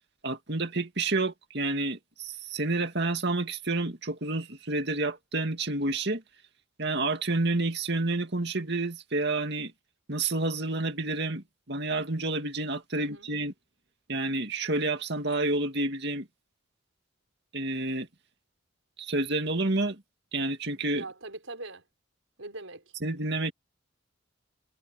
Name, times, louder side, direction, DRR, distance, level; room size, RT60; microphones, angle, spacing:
voice 1, 0.2-6.2 6.8-9.7 10.1-13.5 14.1-16.3 17.5-18.1 19.0-20.0 20.3-21.0 23.0-23.5, right 2 dB, 55° right, 2.4 m, -29 dB
voice 2, 12.9-13.3 21.0-21.9 22.4-22.9, right 2 dB, 75° right, 5.4 m, -41 dB
head